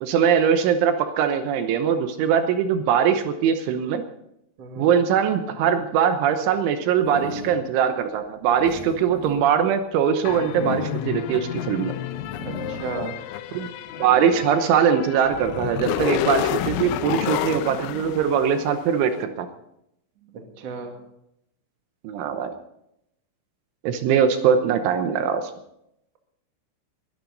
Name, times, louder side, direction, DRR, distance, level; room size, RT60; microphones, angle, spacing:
voice 1, 0.0-4.0 4.8-11.9 13.5-13.7 14.0-19.5 22.1-22.5 23.8-25.4, right 8 dB, 80° right, 8 dB, 3.3 m, -21 dB
voice 2, 4.6-4.9 12.4-13.2 20.2-21.0, right 4 dB, 45° right, 3 dB, 2.4 m, -35 dB
sound 1, 7.0-7.8 8.3-11.5 12.0-13.4 13.7-15.6 16.2-18.3, left 3 dB, 55° left, 3.0 m, -38 dB
sound 2, 10.3-19.0, left 12 dB, 80° left, 3.2 m, -30 dB
22.0 x 12.0 x 4.0 m, 0.78 s
omnidirectional pair, 5.7 m